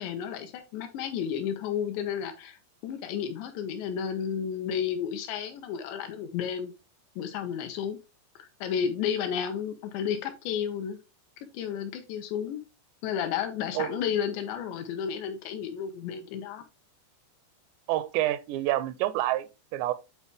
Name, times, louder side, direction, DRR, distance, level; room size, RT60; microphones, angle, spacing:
voice 1, 0.0-2.6 2.8-6.7 7.2-8.0 8.4-11.0 11.5-12.6 13.0-16.6, left 8 dB, 85° left, 3.3 m, -32 dB
voice 2, 17.9-19.5 19.7-19.9, right 14 dB, 85° right, 2.8 m, -27 dB
9.0 x 4.1 x 3.5 m
omnidirectional pair, 5.0 m